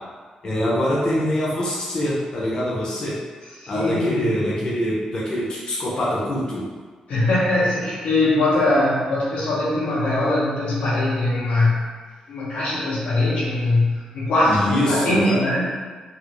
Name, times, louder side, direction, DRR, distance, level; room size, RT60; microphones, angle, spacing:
voice 1, 0.4-3.1 3.7-6.6 14.4-15.4, left 1 dB, 35° left, -8 dB, 0.7 m, -24 dB
voice 2, 3.6-4.3 7.1-11.8 12.3-15.7, left 2 dB, 90° left, -7 dB, 0.9 m, -21 dB
2.6 x 2.5 x 3.0 m, 1.5 s
wide cardioid pair, 155°, 2 cm